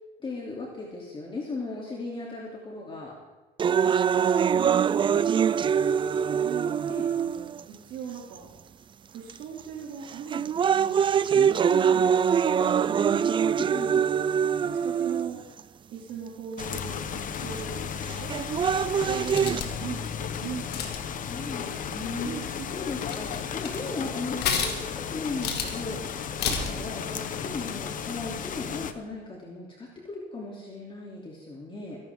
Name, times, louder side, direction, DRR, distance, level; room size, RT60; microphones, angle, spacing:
voice 1, 0.2-3.1 6.9-7.1 11.4-11.9 13.5-14.0 21.2-22.3 22.7-32.0, left 3 dB, 30° left, -3 dB, 3.0 m, -37 dB
sound 1, 3.6-7.6 8.4-8.5 9.3-9.6 10.1-15.6 16.6-16.7 18.1-19.6, right 7 dB, 30° right, 0.3 m, -24 dB
voice 2, 4.5-6.9 7.1-8.5 9.1-11.0 11.7-13.4 13.9-14.3 14.6-15.4 15.9-20.7 22.2-22.6, right 7 dB, 80° right, -4 dB, 2.9 m, -40 dB
sound 2, 16.6-28.9, left 7 dB, 50° left, 1.1 m, -34 dB
sound 3, 19.1-19.9 20.6-21.1 22.5-22.6 22.9-23.8 24.4-25.0 25.4-25.8 26.4-26.8, left 6 dB, 75° left, 2.4 m, -30 dB
23.0 x 11.5 x 3.7 m, 1.2 s
cardioid pair, 110°, 17 cm